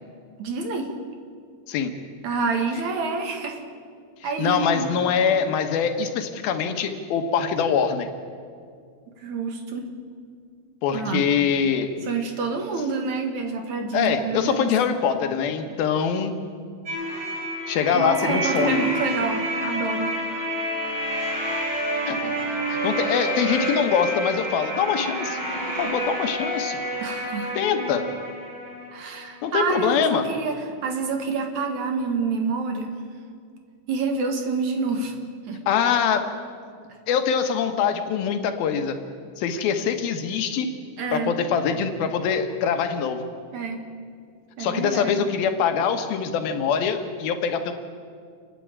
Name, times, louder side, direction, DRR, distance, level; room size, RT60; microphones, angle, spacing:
voice 1, 0.4-0.9 2.2-3.6 4.2-5.0 9.2-9.9 10.9-11.3 12.1-14.7 17.9-20.2 27.0-27.6 28.9-30.5 30.8-33.0 33.9-35.1 35.5-35.6 41.0-41.3 43.5-43.8 44.6-45.2, right 4 dB, 60° right, 5 dB, 2.8 m, -27 dB
voice 2, 4.2-8.1 10.8-11.9 13.9-16.3 17.7-18.9 22.1-22.4 22.7-25.4 25.8-26.8 27.5-28.0 29.4-30.3 35.7-36.2 37.1-39.0 39.4-40.7 41.1-43.2 44.6-47.7, left 7 dB, 90° left, 7 dB, 3.2 m, -23 dB
sound 1, 16.9-29.5, right 1 dB, 35° right, 6.1 m, -29 dB
29.5 x 10.0 x 8.8 m, 2.1 s
omnidirectional pair, 4.1 m